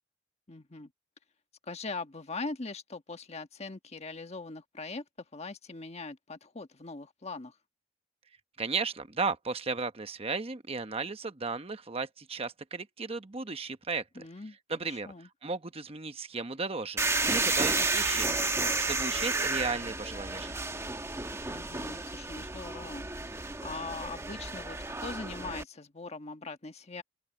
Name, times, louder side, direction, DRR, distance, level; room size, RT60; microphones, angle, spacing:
voice 1, 0.5-0.9 1.7-5.0 5.3-7.5 14.1-14.6 14.8-15.3 21.5-27.0, left 3 dB, 35° left, 1.4 m, -41 dB
voice 2, 8.6-14.2 14.7-15.1 15.4-18.5 18.9-20.5, right 4 dB, 35° right, 1.0 m, -35 dB
sound 1, 17.0-25.6, right 3 dB, 15° right, 1.2 m, -32 dB
head